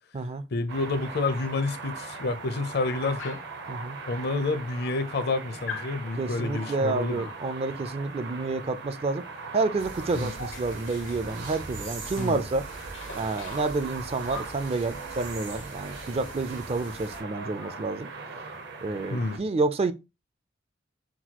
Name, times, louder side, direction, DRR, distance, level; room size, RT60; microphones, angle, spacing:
voice 1, 0.5-3.4 4.1-7.3 10.1-10.3 12.2-12.4 19.1-19.4, left 3 dB, 55° left, 0.6 m, -29 dB
sound 1, 0.7-19.4, right 4 dB, 60° right, 0.8 m, -40 dB
Dog, 3.2-3.6 4.4-4.5 4.8-5.3 5.7-6.0 7.1-7.4 9.2-9.4 9.7-12.4 12.7-14.6 15.8-16.0 16.3-16.4 16.7-18.0, left 5 dB, 90° left, 0.9 m, -44 dB
voice 2, 6.2-9.3 9.5-12.7 13.1-18.1 18.8-19.9, right 3 dB, 30° right, 0.4 m, -29 dB
sound 2, 9.8-17.2, right 3 dB, 80° right, 1.9 m, -42 dB
6.0 x 2.3 x 2.9 m
head